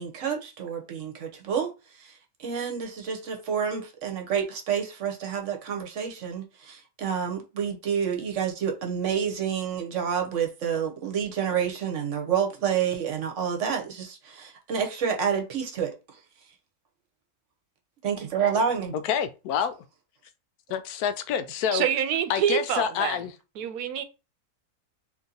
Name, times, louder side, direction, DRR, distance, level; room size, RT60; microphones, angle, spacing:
voice 1, 0.0-1.7 2.0-15.9 18.0-18.9, right 7 dB, 60° right, 1.1 m, -29 dB
voice 2, 19.0-19.7 20.7-21.9 22.3-23.3, left 8 dB, 85° left, 1.1 m, -27 dB
voice 3, 21.7-23.2 23.6-24.0, right 9 dB, 90° right, 1.1 m, -26 dB
2.9 x 2.7 x 3.8 m
omnidirectional pair, 1.6 m